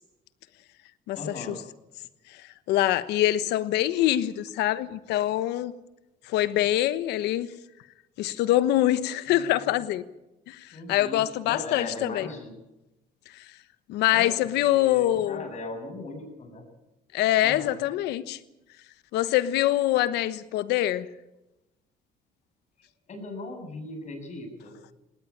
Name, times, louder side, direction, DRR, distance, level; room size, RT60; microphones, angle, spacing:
voice 1, 1.2-1.6 9.3-9.7 10.7-12.5 14.1-14.3 14.7-16.6 17.4-17.7 23.1-24.8, left 2 dB, 45° left, 5 dB, 7.4 m, -38 dB
voice 2, 2.7-5.7 6.3-7.5 8.2-10.0 10.5-12.3 13.9-15.5 17.1-18.4 19.1-21.1, left 14 dB, 85° left, 15 dB, 1.2 m, -24 dB
19.0 x 18.5 x 8.7 m, 0.94 s
cardioid pair, 110°, 17 cm